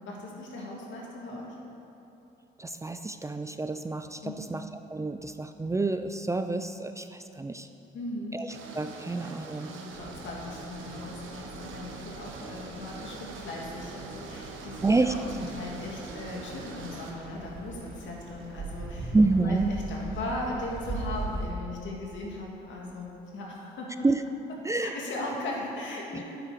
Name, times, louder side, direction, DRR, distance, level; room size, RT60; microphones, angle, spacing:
voice 1, 0.1-1.6 4.2-4.5 7.9-8.4 9.1-19.1 19.4-24.1 24.8-26.2, left 2 dB, 75° left, -2 dB, 2.1 m, -38 dB
voice 2, 2.6-7.7 8.3-9.7 14.8-15.1 19.1-19.7 24.0-24.2 24.6-24.9 26.1-26.2, right 3 dB, 15° right, 8 dB, 0.4 m, -28 dB
sound 1, 8.5-17.1, right 4 dB, 80° right, 1.2 m, -43 dB
sound 2, 9.9-21.5, right 2 dB, 50° right, 2.5 m, -41 dB
8.9 x 8.9 x 4.9 m, 2.9 s
cardioid pair, 90°, 20 cm